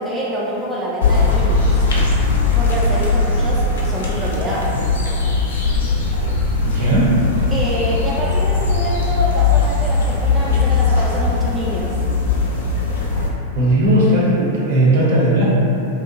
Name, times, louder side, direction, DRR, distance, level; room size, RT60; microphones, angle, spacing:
voice 1, 0.0-1.9 2.5-4.7 7.5-12.0, right 1 dB, 15° right, -6 dB, 0.3 m, -26 dB
sound 1, 1.0-13.3, left 3 dB, 65° left, 0.4 m, -19 dB
voice 2, 6.6-7.1 13.5-15.4, right 1 dB, 55° right, -5 dB, 0.6 m, -16 dB
2.8 x 2.1 x 2.6 m, 2.8 s
figure-of-eight pair, 90°, 0 cm